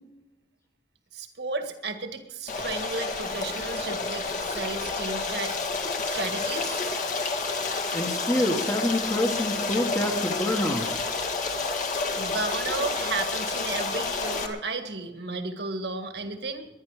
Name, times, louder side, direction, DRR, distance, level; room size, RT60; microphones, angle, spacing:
voice 1, 1.1-5.6 6.0-6.8 12.2-16.7, right 3 dB, 65° right, 6 dB, 1.8 m, -33 dB
Stream, 2.5-14.5, left 4 dB, 45° left, 1.8 m, -30 dB
voice 2, 7.9-11.0, left 1 dB, 20° left, 1 dB, 1.5 m, -27 dB
21.0 x 10.5 x 4.9 m, 1.0 s
head